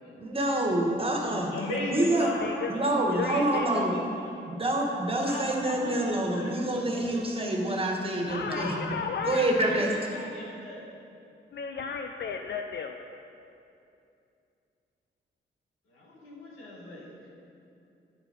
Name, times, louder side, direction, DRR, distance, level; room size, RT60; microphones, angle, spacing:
voice 1, 0.2-1.5 1.9-2.3 2.7-4.0 4.5-9.0 9.2-9.9, right 1 dB, 25° right, 0 dB, 1.6 m, -27 dB
voice 2, 1.5-2.8 3.1-4.0 4.4-4.5 5.2-5.9 6.3-6.6 6.9-7.1 8.4-8.9 9.6-10.9 15.9-17.1, left 1 dB, 90° left, -4 dB, 1.5 m, -38 dB
voice 3, 2.4-2.8 3.1-3.8 8.3-9.5 11.5-13.0, left 6 dB, 60° left, 5 dB, 0.5 m, -34 dB
9.3 x 5.0 x 5.2 m, 2.6 s
supercardioid pair, 45°, 21 cm